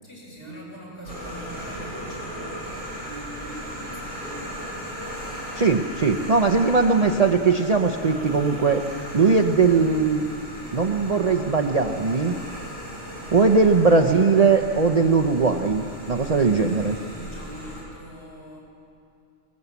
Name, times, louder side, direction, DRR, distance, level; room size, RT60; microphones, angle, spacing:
voice 1, 0.0-4.4 13.0-13.4 16.5-18.6, right 1 dB, 50° left, -6 dB, 7.6 m, -42 dB
sound 1, 1.0-17.8, equal, 75° left, 8.4 m, -37 dB
voice 2, 5.5-8.8 9.1-10.3 10.7-12.4 13.3-17.0, right 4 dB, 35° right, 2 dB, 0.8 m, -19 dB
20.5 x 19.0 x 8.3 m, 2.5 s
omnidirectional pair, 1.3 m